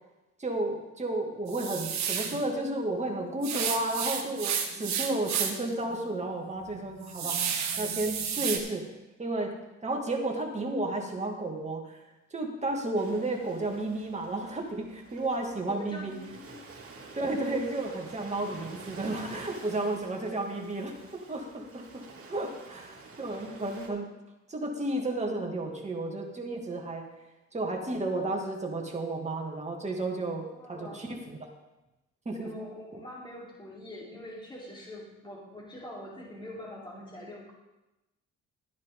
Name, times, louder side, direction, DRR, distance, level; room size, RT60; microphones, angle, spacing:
voice 1, 0.4-8.9 9.2-9.6 9.8-12.0 12.3-16.1 17.1-20.9 21.3-24.1 24.5-27.1 27.5-31.5 32.3-32.5, right 2 dB, 20° right, 0 dB, 2.4 m, -32 dB
sound 1, 1.5-2.4 3.4-5.7 6.1-6.2 6.7-8.6, right 7 dB, 65° right, 1.5 m, -31 dB
Ocean, 12.9-23.9, right 3 dB, 50° right, 2.8 m, -49 dB
voice 2, 15.7-16.6 30.2-31.1 32.4-37.5, left 1 dB, 15° left, -5 dB, 4.0 m, -44 dB
13.0 x 10.0 x 3.9 m, 0.99 s
cardioid pair, 90°, 30 cm